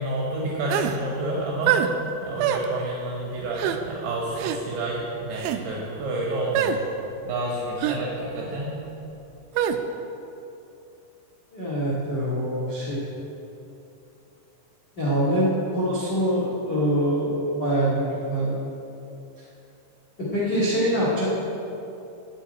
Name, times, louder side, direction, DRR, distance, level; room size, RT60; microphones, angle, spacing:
voice 1, 0.0-6.8 7.2-8.7, right 1 dB, 70° right, -3 dB, 3.4 m, -29 dB
sound 1, 0.7-1.0 1.7-1.9 2.4-2.7 3.6-3.8 4.4-4.6 5.3-5.6 6.6-6.8 7.8-8.0 9.6-9.8, right 10 dB, 85° right, 3.3 m, -24 dB
voice 2, 11.5-13.0 14.9-18.0 18.3-18.5 20.2-21.2, equal, 80° left, -8 dB, 0.9 m, -24 dB
8.3 x 7.4 x 8.8 m, 2.8 s
omnidirectional pair, 6.0 m